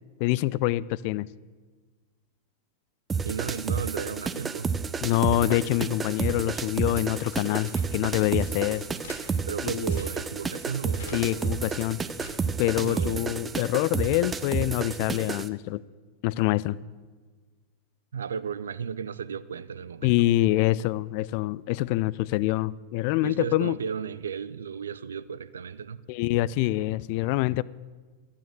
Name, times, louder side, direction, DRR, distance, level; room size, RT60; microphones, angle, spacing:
voice 1, 0.2-1.3 5.0-8.9 9.6-9.9 11.1-12.0 12.6-15.8 16.2-16.8 20.0-23.8 26.1-27.6, left 16 dB, 45° left, 0.3 m, -25 dB
sound 1, 3.1-15.5, right 5 dB, 15° right, 0.6 m, -31 dB
voice 2, 3.2-4.7 9.5-11.7 12.8-13.3 18.1-20.2 23.2-26.0, right 7 dB, 70° right, 0.5 m, -34 dB
sound 2, 4.6-12.7, left 2 dB, 60° left, 2.6 m, -49 dB
12.0 x 8.7 x 9.0 m
figure-of-eight pair, 90°, 0 cm